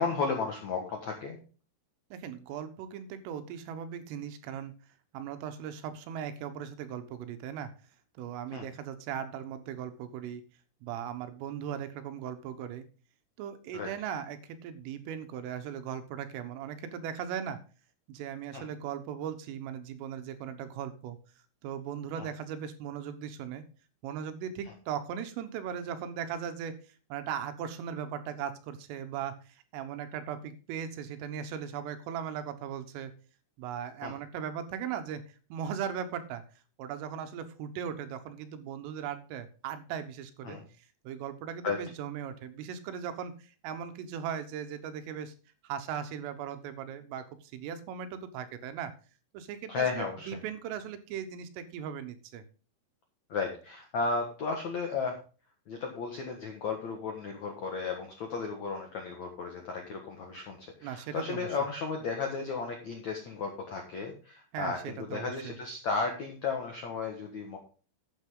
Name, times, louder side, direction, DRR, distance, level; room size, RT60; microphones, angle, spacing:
voice 1, 0.0-1.4 8.5-8.6 13.7-13.9 18.5-18.6 22.2-22.3 34.0-34.1 40.4-40.6 41.6-41.8 49.7-50.3 53.3-55.2 55.7-67.6, left 4 dB, 70° left, 3 dB, 1.7 m, -34 dB
voice 2, 2.1-4.7 5.1-7.7 8.2-10.4 10.8-12.9 13.4-17.6 18.1-21.2 21.6-23.6 24.0-26.7 27.1-33.1 33.6-35.2 35.5-36.4 36.8-40.6 41.1-45.3 45.6-48.9 49.3-52.4 60.8-61.5 64.5-65.6, right 8 dB, 85° right, 9 dB, 3.7 m, -38 dB
12.0 x 8.9 x 3.8 m, 0.37 s
omnidirectional pair, 5.8 m